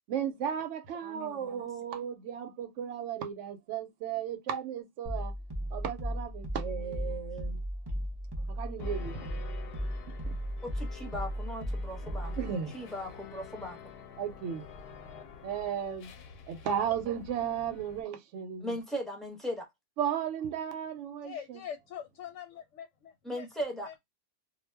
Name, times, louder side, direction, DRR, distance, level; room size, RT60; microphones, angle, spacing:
voice 1, 0.1-5.3 5.7-7.6 8.5-9.3 10.2-10.3 12.4-12.7 14.2-14.7 15.4-16.1 16.5-18.8 20.0-21.6, right 8 dB, 75° right, 0.9 m, -35 dB
voice 2, 1.0-1.6 6.9-7.2 10.6-12.3 12.7-13.8 18.6-19.7 23.2-23.9, equal, ahead, 0.6 m, -38 dB
sound 1, 5.0-12.5, equal, 45° right, 0.3 m, -36 dB
sound 2, 8.8-18.0, left 6 dB, 65° left, 0.7 m, -49 dB
voice 3, 21.2-23.5 23.8-24.0, left 8 dB, 90° left, 0.9 m, -43 dB
2.2 x 2.1 x 3.2 m
omnidirectional pair, 1.3 m